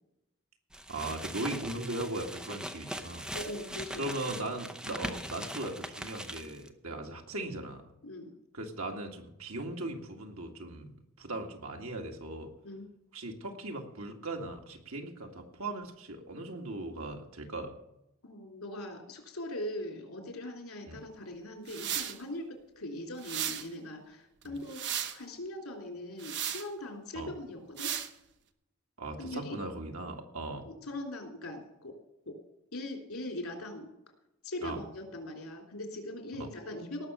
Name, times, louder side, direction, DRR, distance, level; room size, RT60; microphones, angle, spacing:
sound 1, 0.7-6.7, right 1 dB, 5° right, 0.7 m, -41 dB
voice 1, 0.9-3.3 4.0-7.8 8.5-12.5 13.1-17.7 20.9-21.0 24.4-24.6 27.1-27.3 29.0-30.7 34.6-34.8 36.3-36.5, right 2 dB, 85° right, 3 dB, 2.1 m, -38 dB
voice 2, 3.3-4.1 8.0-8.3 12.6-12.9 18.2-22.5 22.8-24.8 25.1-27.9 29.2-29.5 30.7-31.9 32.2-32.4 32.7-33.9 34.4-37.1, left 1 dB, 85° left, 2 dB, 3.3 m, -40 dB
sound 2, 21.7-22.2 23.2-23.7 24.4-25.2 26.2-26.7 27.8-28.1, right 9 dB, 55° right, 1.0 m, -35 dB
18.5 x 6.3 x 6.8 m, 0.86 s
head